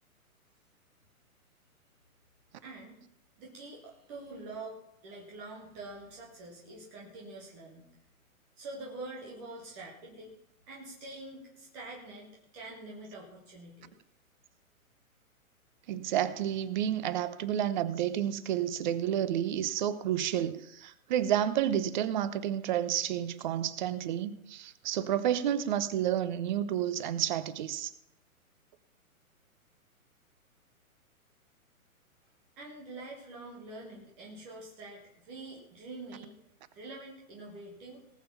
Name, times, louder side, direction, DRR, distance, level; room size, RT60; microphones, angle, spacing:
voice 1, 2.6-3.0 3.4-4.8 5.0-7.9 8.6-10.3 10.7-13.9 32.6-36.4 36.7-38.0, right 2 dB, 5° right, 0.4 m, -45 dB
voice 2, 15.9-27.9, right 10 dB, 35° right, 0.8 m, -30 dB
18.5 x 7.0 x 5.6 m
hypercardioid pair, 130°, 43 cm